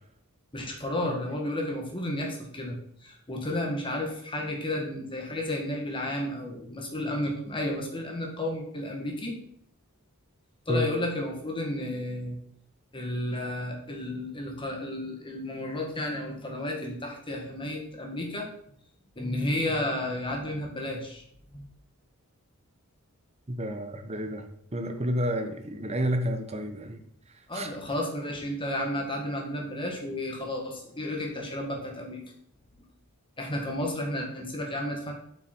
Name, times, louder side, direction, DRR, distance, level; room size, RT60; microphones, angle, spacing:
voice 1, 0.5-9.4 10.7-12.4 12.9-18.5 19.2-21.2 21.5-21.6 27.5-32.2 33.4-35.1, left 1 dB, 25° left, 0 dB, 1.8 m, -32 dB
voice 2, 23.5-24.5 24.7-27.0 27.5-27.7, equal, 30° right, 7 dB, 0.9 m, -30 dB
7.6 x 6.0 x 4.5 m, 0.68 s
head